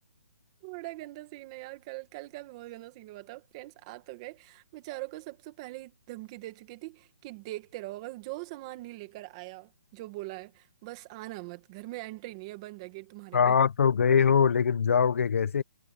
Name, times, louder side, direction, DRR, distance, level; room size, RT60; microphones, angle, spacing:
voice 1, 0.6-13.5, right 19 dB, 20° right, 1.9 m, -42 dB
voice 2, 13.3-15.6, left 7 dB, 55° left, 0.8 m, -22 dB
hypercardioid pair, 175°, 9 cm